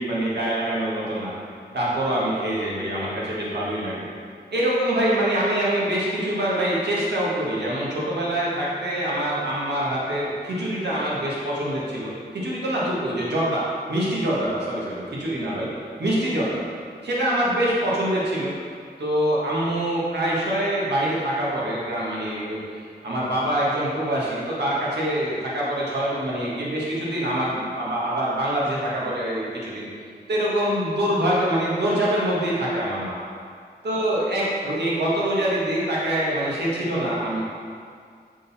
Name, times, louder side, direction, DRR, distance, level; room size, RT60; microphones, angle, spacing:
voice 1, 0.0-1.3 1.7-4.1 4.5-15.7 16.0-16.6 17.0-18.5 19.0-22.6 23.0-29.9 30.3-33.2 33.8-37.4, right 1 dB, 75° right, -6 dB, 1.5 m, -25 dB
6.3 x 3.9 x 4.2 m, 2.2 s
wide cardioid pair, 100°, 18 cm